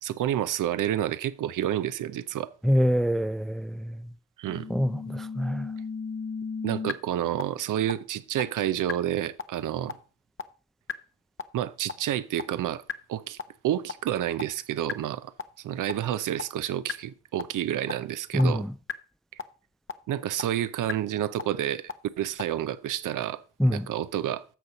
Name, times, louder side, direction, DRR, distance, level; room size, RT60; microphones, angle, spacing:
voice 1, 0.0-2.5 4.4-4.7 6.6-10.0 11.5-12.8 13.1-13.4 13.6-18.6 20.1-23.4 23.7-24.4, right 11 dB, 80° right, 0.6 m, -29 dB
voice 2, 2.6-4.0 4.7-5.7 18.3-18.7 23.6-23.9, equal, ahead, 0.3 m, -25 dB
sound 1, 4.5-6.9 7.4-7.5 7.9-8.0 8.4-8.5 8.9-9.0 9.4-9.5 9.9-10.0 10.4-10.5 10.9-11.0 11.4-11.5 11.9-12.0 12.4-12.5 12.9-13.0 13.4-13.5 13.9-14.0 14.4-14.5 14.9-15.0 15.4-15.5 15.9-16.0 16.4-16.5 16.9-17.0 17.4-17.5 17.9-18.0 18.4-18.5 18.9-19.0 19.4-19.5 19.9-20.0 20.4-20.5 20.9-21.0 21.4-21.5 21.9-22.0 22.4-22.5, left 6 dB, 40° left, 0.8 m, -32 dB
10.0 x 6.6 x 4.0 m
supercardioid pair, 45°, 31 cm